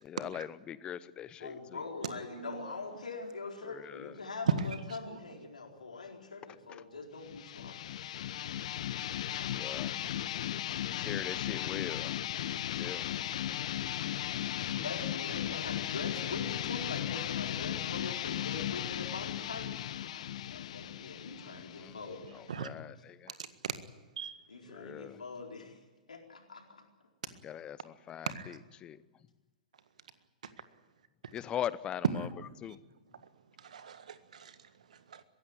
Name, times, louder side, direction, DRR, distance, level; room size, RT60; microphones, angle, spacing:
voice 1, 0.0-1.8 3.7-4.1 6.7-6.8 9.5-10.0 11.0-12.2 12.6-13.1 14.7-14.9 21.4-22.0 22.3-23.3 24.7-25.2 27.4-29.0 31.3-32.3 32.6-32.8, left 10 dB, 25° left, 18 dB, 0.8 m, -41 dB
voice 2, 1.4-7.9 14.6-22.5 24.5-25.8 26.1-26.8, left 4 dB, 75° left, 2 dB, 4.3 m, -43 dB
voice 3, 2.0-2.7 5.0-5.2 22.5-22.7 23.3-23.4 23.6-23.8 24.2-24.4 28.3-28.6 33.6-34.5 34.9-35.2, right 7 dB, 65° right, 12 dB, 1.7 m, -41 dB
sound 1, 7.2-22.6, left 11 dB, 55° left, 0.8 m, -36 dB
22.0 x 15.5 x 9.6 m, 1.2 s
figure-of-eight pair, 105°, 4 cm